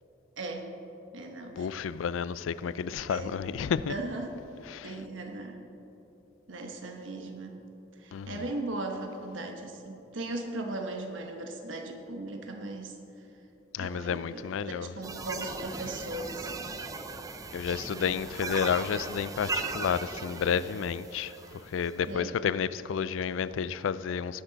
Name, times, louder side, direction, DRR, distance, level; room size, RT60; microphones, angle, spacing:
voice 1, 0.4-0.7 1.1-1.7 3.1-3.4 3.9-4.4 4.8-5.6 6.5-7.6 8.0-13.3 13.8-16.8 22.1-22.4, right 2 dB, 80° right, 1.0 m, -38 dB
voice 2, 1.6-4.0 4.6-5.0 8.1-8.5 13.7-15.0 17.5-24.4, left 7 dB, 85° left, 0.3 m, -31 dB
sound 1, 15.0-22.0, right 3 dB, 20° right, 0.5 m, -38 dB
19.5 x 6.8 x 4.0 m
head